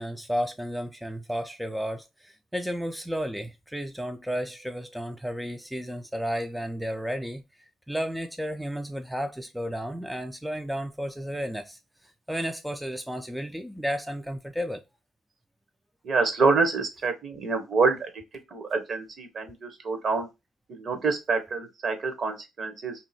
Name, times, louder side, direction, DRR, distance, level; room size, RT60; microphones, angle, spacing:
voice 1, 0.0-7.4 7.9-11.8 12.3-14.8, equal, 5° right, 0.4 m, -32 dB
voice 2, 16.0-18.1 18.5-20.3 20.7-22.9, right 4 dB, 50° right, 0.9 m, -26 dB
2.8 x 2.5 x 4.1 m
cardioid pair, 90°, 0 cm